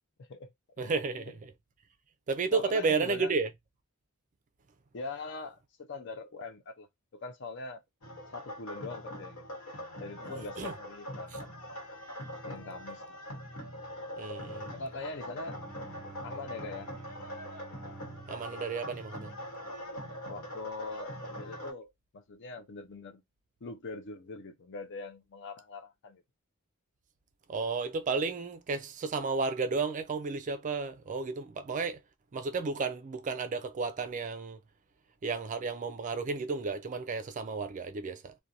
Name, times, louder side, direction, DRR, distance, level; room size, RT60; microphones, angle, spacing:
voice 1, 0.2-1.3 2.5-3.3 4.9-7.8 8.3-9.4 10.0-11.5 12.4-13.2 14.7-15.6 16.2-16.9 20.3-23.2 23.6-26.2, left 3 dB, 55° left, 0.5 m, -42 dB
voice 2, 0.8-1.5 2.3-3.5 10.6-10.7 14.2-14.7 18.3-19.3 27.5-32.0 32.3-34.6 35.2-38.3, right 4 dB, 35° right, 0.4 m, -32 dB
sound 1, 8.0-21.7, equal, 85° left, 1.1 m, -42 dB
Bowed string instrument, 15.0-20.2, right 3 dB, ahead, 1.0 m, -52 dB
2.5 x 2.1 x 2.7 m
head